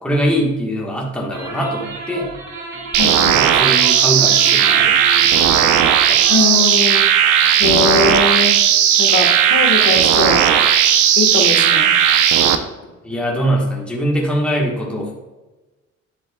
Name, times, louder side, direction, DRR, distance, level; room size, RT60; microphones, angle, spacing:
voice 1, 0.0-2.3 3.3-5.4 6.1-6.2 13.0-15.1, equal, 5° left, -3 dB, 1.3 m, -22 dB
sound 1, 1.3-6.7, right 3 dB, 65° right, 2.0 m, -31 dB
voice 2, 2.9-3.4 6.3-7.1 7.6-8.6 9.0-10.4 11.2-11.9, left 4 dB, 75° left, 3 dB, 1.4 m, -21 dB
sound 2, 2.9-12.6, right 9 dB, 85° right, 0.7 m, -14 dB
10.0 x 7.4 x 2.3 m, 1.2 s
cardioid pair, 170°, 30 cm